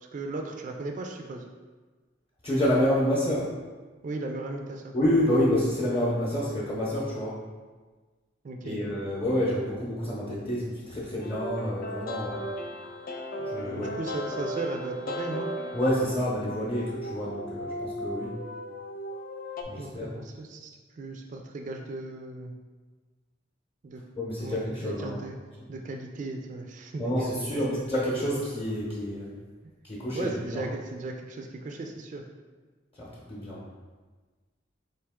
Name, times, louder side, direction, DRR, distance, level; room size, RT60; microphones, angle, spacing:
voice 1, 0.1-1.4 4.0-4.9 8.4-8.8 13.8-15.5 19.8-20.7 21.0-22.6 23.8-24.0 24.4-25.4 25.7-27.4 30.2-32.2, right 2 dB, 40° right, 3 dB, 0.3 m, -36 dB
voice 2, 2.4-3.5 4.9-7.3 8.6-12.4 13.5-13.9 15.7-18.3 19.7-20.1 24.2-25.2 27.0-29.3 29.8-30.6 33.0-33.6, equal, 30° left, -6 dB, 0.8 m, -28 dB
sound 1, 11.2-19.6, equal, 50° left, 0.4 m, -36 dB
4.5 x 2.7 x 3.5 m, 1.4 s
head